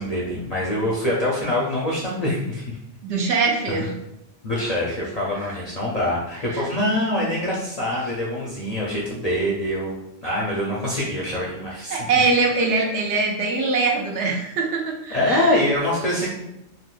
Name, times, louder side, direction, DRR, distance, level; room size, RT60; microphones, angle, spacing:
voice 1, 0.0-2.8 3.7-3.9 4.4-12.0 15.1-16.3, left 1 dB, 50° left, -5 dB, 0.5 m, -24 dB
voice 2, 3.0-3.9 6.5-6.7 11.9-15.5, right 4 dB, 70° right, 0 dB, 0.9 m, -22 dB
3.5 x 2.6 x 2.3 m, 0.87 s
omnidirectional pair, 1.2 m